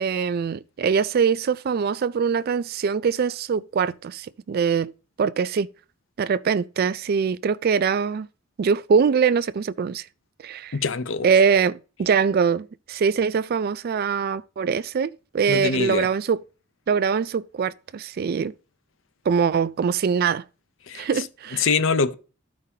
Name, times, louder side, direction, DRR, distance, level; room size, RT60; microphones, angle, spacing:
voice 1, 0.0-4.9 5.2-5.7 6.2-8.3 8.6-10.0 10.4-10.7 11.2-16.4 16.9-18.5 19.3-20.4 20.9-21.7, right 6 dB, 50° right, 0.3 m, -23 dB
voice 2, 10.7-11.3 15.5-16.1 20.9-21.3 21.5-22.1, left 5 dB, 75° left, 0.6 m, -24 dB
14.0 x 5.2 x 2.8 m
head